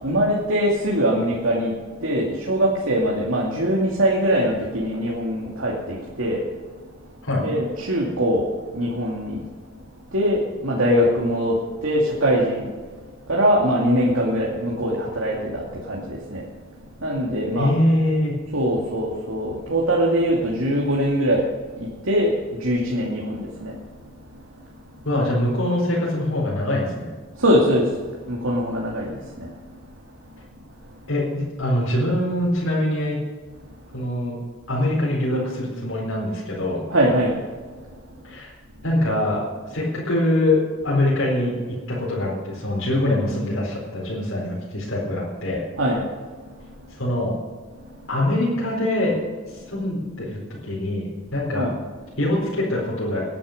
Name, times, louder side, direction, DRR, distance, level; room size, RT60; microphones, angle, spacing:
voice 1, 0.0-1.7 2.0-5.7 6.2-6.4 7.4-8.5 8.7-9.4 10.1-11.5 11.8-12.6 13.3-15.6 15.9-16.4 17.0-17.7 18.5-21.4 22.1-22.3 22.6-23.7 27.4-27.8 28.3-29.1 36.9-37.3 45.8-46.0 51.5-51.7, equal, 85° right, -4 dB, 2.5 m, -22 dB
voice 2, 17.6-18.4 25.0-27.1 31.1-33.2 33.9-34.4 34.7-36.9 38.2-38.5 38.8-39.4 39.7-41.5 41.9-45.6 47.0-47.3 48.1-49.2 49.5-51.7 52.2-53.2, left 1 dB, 85° left, -5 dB, 4.5 m, -23 dB
19.0 x 10.5 x 5.2 m, 1.5 s
head